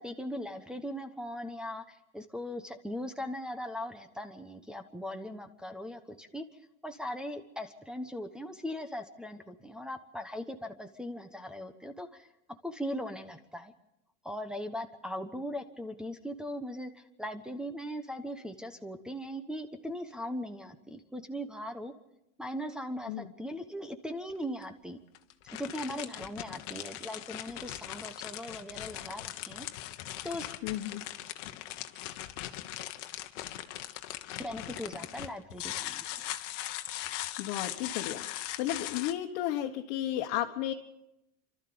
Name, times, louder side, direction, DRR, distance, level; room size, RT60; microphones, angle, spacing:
voice 1, 0.0-6.4 6.8-12.3 12.6-13.7 14.2-21.9 22.4-25.0 25.5-29.7 30.2-30.5 34.4-36.1, equal, ahead, 3 dB, 1.1 m, -39 dB
sound 1, 24.3-24.4 25.1-39.1, left 14 dB, 75° left, 1.4 m, -40 dB
voice 2, 30.6-31.0 37.1-40.7, left 12 dB, 60° left, 0 dB, 1.5 m, -34 dB
28.5 x 13.0 x 7.0 m, 0.89 s
supercardioid pair, 130°, 37 cm